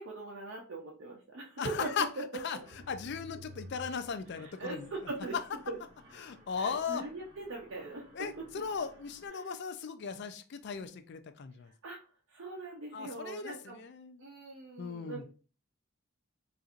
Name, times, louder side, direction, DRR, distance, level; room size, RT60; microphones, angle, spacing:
voice 1, 0.0-2.1 4.4-5.3 5.7-5.8 6.6-8.5 9.3-9.6 11.8-13.8 14.2-15.3, right 2 dB, 60° right, -2 dB, 0.6 m, -41 dB
voice 2, 1.6-2.1 2.4-2.6 2.9-4.9 6.2-7.0 8.2-11.7 12.9-14.2 14.8-15.2, left 6 dB, 50° left, 8 dB, 0.4 m, -37 dB
Mechanisms, 2.6-9.3, left 1 dB, 20° right, 0.9 m, -54 dB
4.3 x 2.5 x 2.4 m, 0.37 s
head